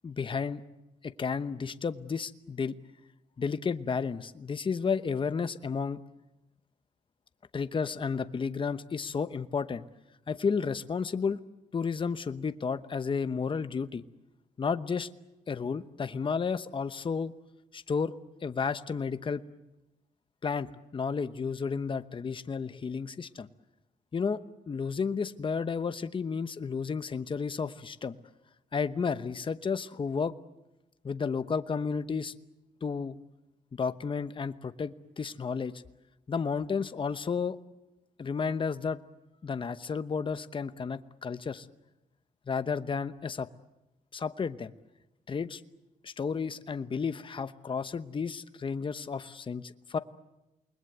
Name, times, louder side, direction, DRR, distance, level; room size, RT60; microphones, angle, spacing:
voice 1, 0.0-0.6 1.0-2.8 3.4-6.0 7.5-9.8 10.3-11.4 11.7-14.0 14.6-15.1 15.5-17.3 17.7-18.1 18.4-19.4 20.4-20.7 20.9-23.5 24.1-24.4 24.7-28.2 28.7-30.3 31.0-32.3 32.8-33.2 33.7-35.7 36.3-37.6 38.2-39.0 39.4-41.7 42.5-43.5 44.1-44.7 45.3-45.6 46.0-50.0, left 5 dB, 35° left, 11 dB, 0.9 m, -32 dB
28.5 x 21.0 x 8.1 m, 0.96 s
cardioid pair, 90°, 15 cm